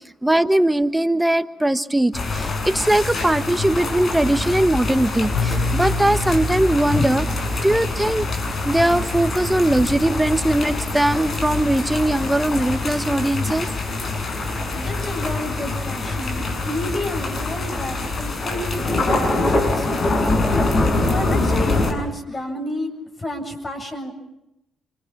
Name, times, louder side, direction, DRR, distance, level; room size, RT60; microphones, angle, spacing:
voice 1, 0.2-7.3 7.6-8.3 8.6-13.7, right 1 dB, 10° right, 11 dB, 1.2 m, -20 dB
sound 1, 2.1-21.9, left 2 dB, 50° left, 7.5 m, -24 dB
sound 2, 5.3-11.1, left 1 dB, 75° left, 7.3 m, -30 dB
voice 2, 14.7-20.6 21.1-22.9 23.2-24.1, left 1 dB, 30° left, 4 dB, 7.9 m, -31 dB
28.0 x 24.5 x 6.1 m, 0.88 s
supercardioid pair, 55°, 0 cm